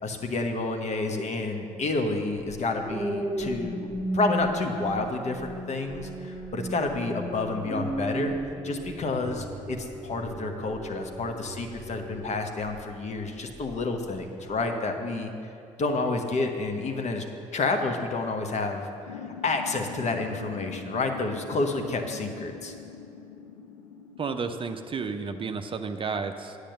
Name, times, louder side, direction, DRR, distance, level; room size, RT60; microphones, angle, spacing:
voice 1, 0.0-3.9 4.1-8.4 8.6-15.3 15.8-17.2 17.5-18.9 19.4-22.7, left 3 dB, 40° left, 5 dB, 1.1 m, -29 dB
sound 1, 2.7-13.0 13.5-13.8, right 1 dB, 15° left, 1.7 m, -35 dB
sound 2, 19.1-24.6, left 7 dB, 80° left, 0.5 m, -43 dB
voice 2, 24.2-26.6, right 5 dB, 30° right, 7 dB, 0.6 m, -32 dB
10.0 x 6.5 x 6.6 m, 2.7 s
figure-of-eight pair, 45°, 17 cm